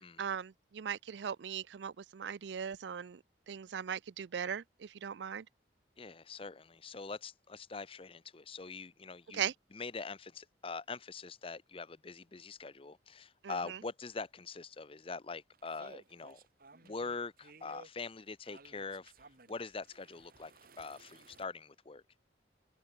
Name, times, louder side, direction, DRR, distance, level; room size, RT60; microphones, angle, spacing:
voice 1, 0.2-5.5 9.3-9.5 13.4-13.8, right 8 dB, 75° right, 0.4 m, -39 dB
voice 2, 6.0-16.4 16.8-19.1 19.5-20.5 20.8-22.0, left 4 dB, 30° left, 0.7 m, -43 dB
sound 1, 15.5-21.5, right 3 dB, 55° right, 2.7 m, -58 dB
head